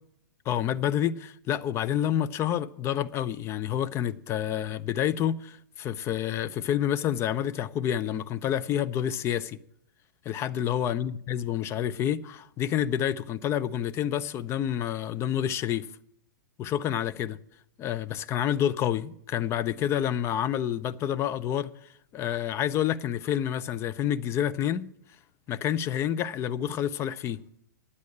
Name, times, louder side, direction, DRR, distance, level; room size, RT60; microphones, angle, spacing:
voice 1, 0.5-9.6 10.3-15.8 16.6-17.4 17.8-21.7 22.1-24.9 25.5-27.4, left 10 dB, 25° left, 0.5 m, -28 dB
9.8 x 8.3 x 7.3 m
figure-of-eight pair, 110°, 10 cm